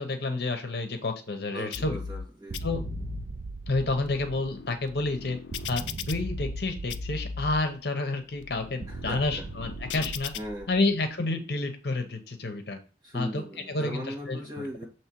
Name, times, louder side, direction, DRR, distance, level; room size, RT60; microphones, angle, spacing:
voice 1, 0.0-2.0 2.6-2.8 3.7-5.4 5.7-10.3 10.7-12.8 13.1-14.4, left 2 dB, 60° left, 6 dB, 0.9 m, -29 dB
voice 2, 1.5-2.8 8.9-9.5 10.3-10.8 13.0-14.8, equal, 25° right, -3 dB, 2.0 m, -39 dB
sound 1, 1.7-2.3 2.5-3.3 3.8-6.6 6.9-7.6 8.2-10.4, left 6 dB, 90° left, 0.4 m, -38 dB
sound 2, 2.5-4.8 5.5-7.8 8.8-11.1, right 3 dB, 45° right, 0.4 m, -40 dB
7.2 x 3.1 x 4.5 m, 0.35 s
head